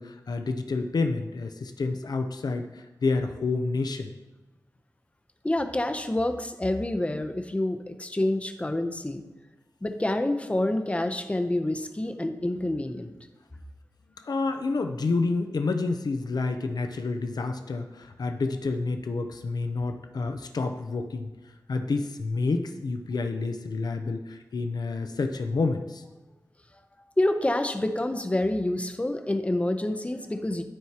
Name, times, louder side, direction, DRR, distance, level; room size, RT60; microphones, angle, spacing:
voice 1, 0.0-4.1 14.2-21.3 21.7-26.0, left 3 dB, 80° left, 6 dB, 0.6 m, -29 dB
voice 2, 5.4-9.2 9.8-13.1 27.2-30.6, left 1 dB, 20° left, 7 dB, 0.6 m, -27 dB
13.0 x 4.6 x 2.9 m, 1.1 s
wide cardioid pair, 90°, 7 cm